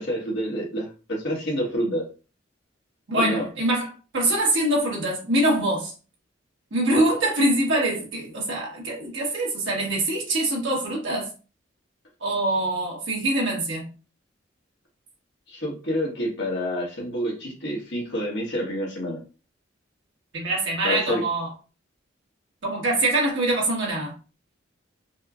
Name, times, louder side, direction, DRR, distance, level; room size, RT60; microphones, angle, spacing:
voice 1, 0.0-2.0 3.2-3.4 15.5-19.2 20.8-21.2, equal, 60° left, 1.3 m, -28 dB
voice 2, 3.1-5.9 6.7-11.3 12.2-13.8 20.3-21.5 22.6-24.1, right 1 dB, 70° right, 1.3 m, -24 dB
4.2 x 2.2 x 2.4 m
head